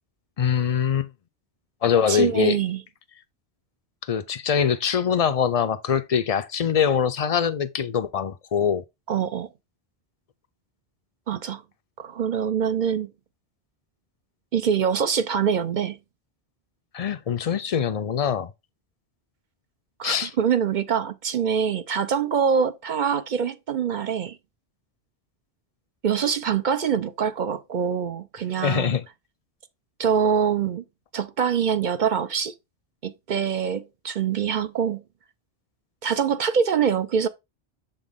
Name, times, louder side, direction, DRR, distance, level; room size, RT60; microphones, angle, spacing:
voice 1, 0.4-1.1 1.8-2.6 4.1-8.8 16.9-18.5 20.0-20.3 28.6-29.0, left 7 dB, 50° left, 0.5 m, -23 dB
voice 2, 2.1-2.8 9.1-9.5 11.3-11.6 12.0-13.1 14.5-16.0 20.0-24.4 26.0-29.0 30.0-30.8 31.1-32.5 33.0-35.0 36.0-37.3, right 7 dB, 55° right, 0.6 m, -24 dB
7.0 x 3.9 x 3.5 m
omnidirectional pair, 1.1 m